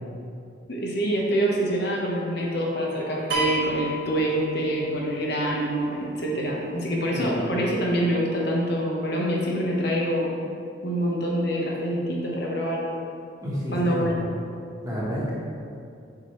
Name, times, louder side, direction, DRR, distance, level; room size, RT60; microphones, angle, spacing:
voice 1, 0.7-10.3 10.8-12.8 13.7-14.2, equal, 60° left, -3 dB, 1.0 m, -25 dB
sound 1, 3.3-5.0, right 2 dB, 70° right, 1.3 m, -30 dB
voice 2, 13.4-14.2 14.8-15.3, equal, 20° right, -7 dB, 1.3 m, -30 dB
7.3 x 4.7 x 3.1 m, 2.5 s
head